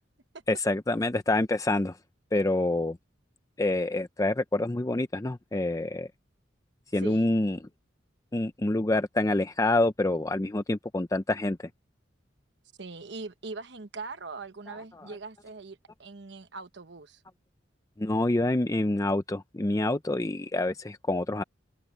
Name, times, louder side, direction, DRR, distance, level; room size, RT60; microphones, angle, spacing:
voice 1, 0.5-2.0 2.3-3.0 3.6-6.1 6.9-7.6 8.3-11.6 18.0-21.4, left 2 dB, 20° left, 0.5 m, -27 dB
voice 2, 7.0-7.4 12.8-17.2, right 3 dB, 65° right, 1.1 m, -41 dB
head